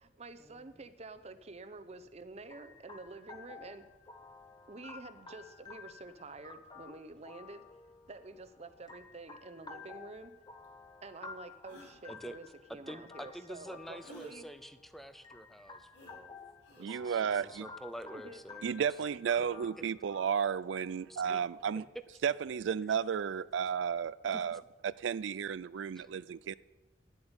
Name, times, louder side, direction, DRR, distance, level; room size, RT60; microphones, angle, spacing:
voice 1, 0.0-3.9 4.7-7.8 8.1-10.3 11.0-14.4 18.0-18.4, right 3 dB, 35° right, 0.8 m, -49 dB
sound 1, 2.5-21.7, left 4 dB, 25° left, 1.2 m, -53 dB
sound 2, 10.6-10.7 11.6-12.0 14.0-14.4 15.9-16.2 16.6-16.9 18.8-19.1, right 1 dB, 80° left, 3.6 m, -54 dB
voice 2, 12.9-16.3 16.8-18.7 19.4-19.5 21.1-21.4 22.9-23.0 24.3-24.4 26.0-26.1, equal, ahead, 0.6 m, -47 dB
voice 3, 16.8-17.6 18.6-21.9 22.2-26.5, right 7 dB, 85° right, 0.4 m, -33 dB
10.5 x 8.0 x 8.9 m
head